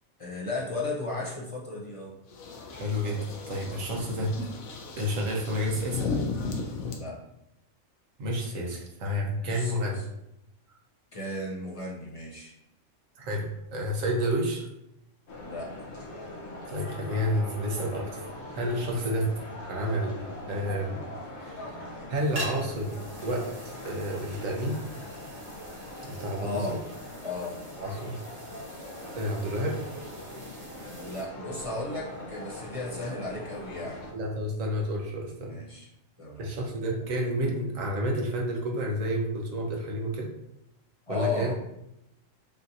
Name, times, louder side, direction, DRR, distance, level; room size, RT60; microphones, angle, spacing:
voice 1, 0.2-2.1 6.9-7.2 9.4-10.0 11.1-12.5 15.4-15.7 18.9-19.1 26.4-26.8 27.2-27.6 30.9-34.0 35.4-35.9 36.2-36.5 41.1-41.5, left 2 dB, 35° left, -3 dB, 0.5 m, -35 dB
sound 1, 2.3-6.9, left 4 dB, 90° left, 1.1 m, -35 dB
voice 2, 2.7-3.2 3.5-4.3 4.9-6.1 8.2-10.0 13.2-14.7 16.6-18.2 18.5-19.3 19.7-21.0 21.4-21.8 22.1-23.0 23.2-24.8 26.0-26.8 27.8-28.1 29.2-29.8 34.1-35.6 36.4-40.3 41.1-41.5, equal, 75° right, -1 dB, 1.2 m, -30 dB
sound 2, 15.3-34.1, left 1 dB, 60° left, 1.1 m, -41 dB
sound 3, 22.2-31.2, right 1 dB, 50° right, 1.1 m, -45 dB
5.4 x 2.7 x 2.6 m, 0.84 s
omnidirectional pair, 1.4 m